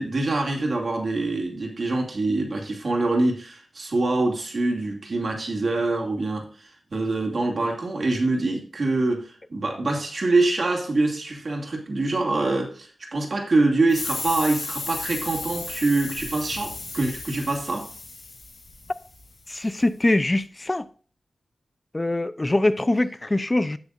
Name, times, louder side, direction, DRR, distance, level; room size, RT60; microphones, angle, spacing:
voice 1, 0.0-17.9, right 2 dB, 50° right, 2.5 m, -25 dB
sound 1, 13.9-19.2, left 3 dB, 60° left, 5.4 m, -34 dB
voice 2, 19.5-20.9 21.9-23.8, left 2 dB, 20° left, 0.5 m, -23 dB
17.5 x 6.3 x 2.5 m
wide cardioid pair, 135°, 0 cm